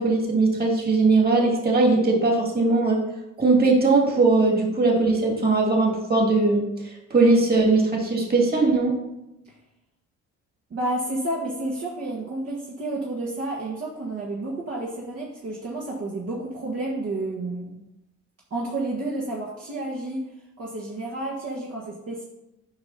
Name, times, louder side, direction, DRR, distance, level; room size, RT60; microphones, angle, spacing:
voice 1, 0.0-3.0 3.4-6.6 7.1-9.0, right 3 dB, 30° right, 0 dB, 2.6 m, -20 dB
voice 2, 10.7-17.8 18.5-20.2 20.6-22.2, right 2 dB, 55° right, -4 dB, 1.7 m, -30 dB
8.8 x 5.2 x 4.2 m, 0.91 s
supercardioid pair, 80°, 30 cm